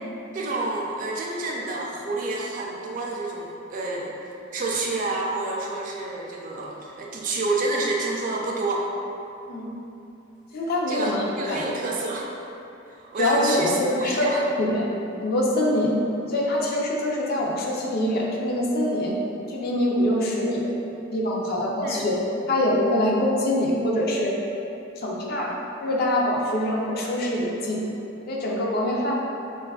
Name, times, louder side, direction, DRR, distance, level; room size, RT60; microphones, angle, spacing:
voice 1, 0.3-4.2 4.5-8.9 10.9-12.3 13.0-14.4 21.8-22.1, right 2 dB, 40° right, -2 dB, 0.3 m, -29 dB
voice 2, 10.5-11.7 13.2-14.3 14.6-14.9 15.2-19.2 19.5-20.7 21.1-22.1 22.5-24.4 25.0-25.5 25.8-27.8 28.3-29.1, left 1 dB, 50° left, -3 dB, 0.4 m, -24 dB
4.0 x 2.3 x 2.3 m, 2.8 s
head